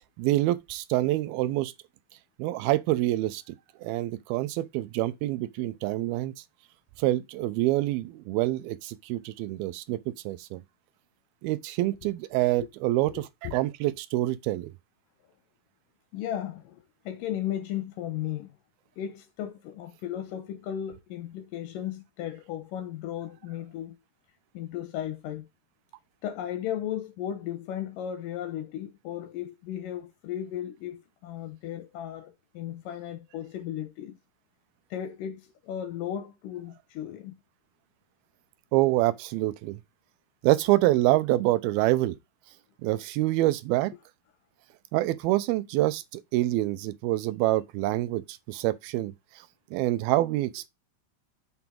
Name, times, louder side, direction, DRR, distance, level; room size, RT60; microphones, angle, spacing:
voice 1, 0.2-1.7 2.4-3.4 3.8-6.3 7.0-10.6 11.4-14.7 38.7-39.8 40.4-42.2 42.8-43.9 44.9-49.1 49.7-50.7, right 16 dB, 85° right, 2.6 m, -26 dB
voice 2, 13.1-13.5 16.1-18.5 19.0-24.0 24.5-25.5 26.2-34.2 34.9-37.4, left 11 dB, 75° left, 2.2 m, -35 dB
6.9 x 6.1 x 3.7 m
omnidirectional pair, 4.3 m